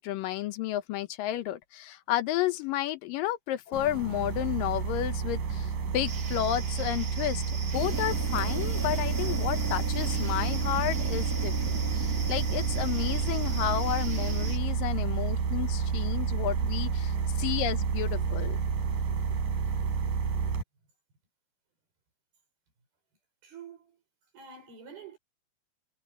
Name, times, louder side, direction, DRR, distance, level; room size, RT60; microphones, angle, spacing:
voice 1, 0.0-18.6, left 13 dB, 75° left, 2.5 m, -32 dB
sound 1, 3.7-20.6, right 6 dB, 65° right, 5.2 m, -30 dB
sound 2, 6.1-14.6, right 5 dB, 40° right, 1.5 m, -42 dB
sound 3, 7.7-14.5, right 1 dB, 10° right, 0.9 m, -38 dB
voice 2, 23.4-24.0 24.3-25.2, right 6 dB, 90° right, 8.5 m, -47 dB
omnidirectional pair, 4.2 m